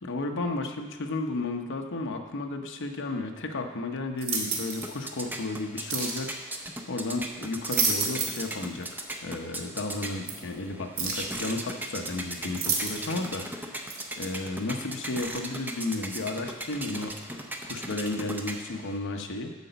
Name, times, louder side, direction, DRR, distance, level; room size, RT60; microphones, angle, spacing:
voice 1, 0.0-13.8 14.2-17.1 17.6-19.5, left 2 dB, 60° left, 3 dB, 0.8 m, -33 dB
sound 1, 4.2-4.9 5.9-6.2 7.4-8.5 8.8-8.9 10.3-10.4 11.0-11.3 12.6-13.2 13.9-14.0, right 4 dB, 65° right, 1.5 m, -29 dB
sound 2, 4.5-19.0, right 1 dB, 10° right, 0.6 m, -38 dB
8.3 x 5.1 x 6.8 m, 1.3 s
head